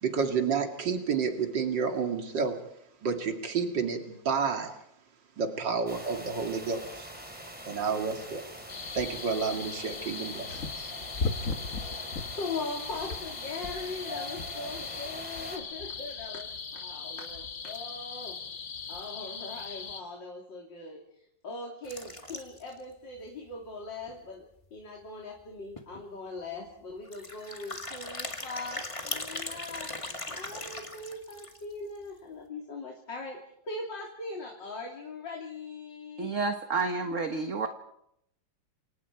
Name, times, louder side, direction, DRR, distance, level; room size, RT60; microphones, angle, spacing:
voice 1, 0.0-2.6 3.0-4.7 5.4-7.1 7.6-8.4 8.9-10.9, right 5 dB, 70° right, 4 dB, 3.0 m, -30 dB
sound 1, 5.9-15.6, equal, 5° right, 3.8 m, -44 dB
sound 2, 8.7-20.0, left 4 dB, 45° left, 1.6 m, -38 dB
voice 2, 12.1-18.4 18.9-29.9 30.3-36.3, left 3 dB, 75° left, 0 dB, 3.7 m, -40 dB
sound 3, 21.8-22.8 23.2-23.3 23.5-23.6 24.1-24.2 25.4-25.5 25.8-26.0 27.1-31.7, left 2 dB, 15° left, 2.0 m, -39 dB
voice 3, 36.2-37.7, right 4 dB, 45° right, 6 dB, 1.6 m, -30 dB
29.0 x 25.5 x 4.7 m, 0.77 s
omnidirectional pair, 2.0 m